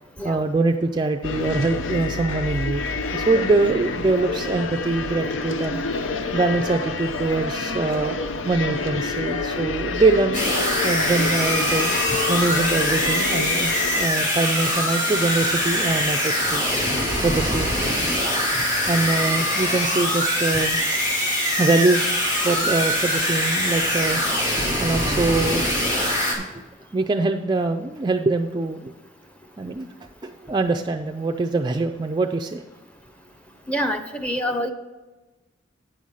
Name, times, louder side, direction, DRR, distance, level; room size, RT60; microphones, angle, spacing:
voice 1, 0.2-2.8 3.1-5.8 6.3-8.2 8.5-10.4 10.8-11.9 12.3-16.7 17.2-17.7 18.4-20.8 21.6-24.2 24.8-25.6 26.4-26.6 26.9-28.9 29.6-29.9 30.2-32.6, right 3 dB, 25° right, 4 dB, 0.3 m, -23 dB
sound 1, 1.2-14.1, left 3 dB, 90° left, 0.6 m, -28 dB
sound 2, 10.3-26.4, left 1 dB, 40° left, 2.3 m, -23 dB
voice 2, 33.7-34.7, equal, 5° left, 5 dB, 0.7 m, -27 dB
9.0 x 6.3 x 5.4 m, 1.2 s
head